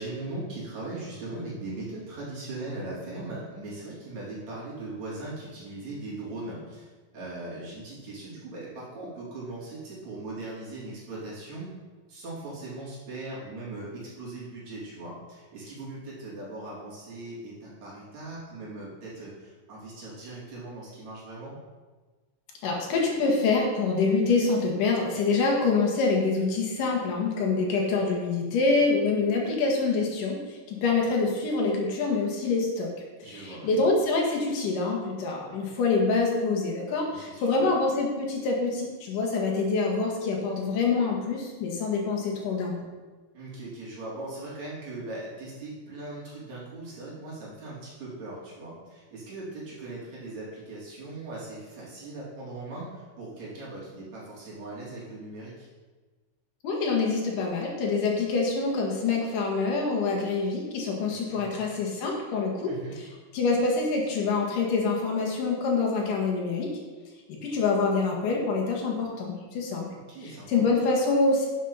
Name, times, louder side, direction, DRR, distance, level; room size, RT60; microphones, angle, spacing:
voice 1, 0.0-11.7 12.1-21.5 33.2-33.8 37.1-37.7 43.3-55.7 61.1-61.5 62.7-62.9 69.9-70.6, right 2 dB, 60° right, -7 dB, 4.6 m, -39 dB
voice 2, 22.6-32.9 33.2-42.8 56.6-63.1 63.3-66.7 67.3-69.9 70.2-71.5, left 3 dB, 85° left, -1 dB, 3.3 m, -26 dB
10.5 x 6.6 x 5.6 m, 1.3 s
omnidirectional pair, 3.6 m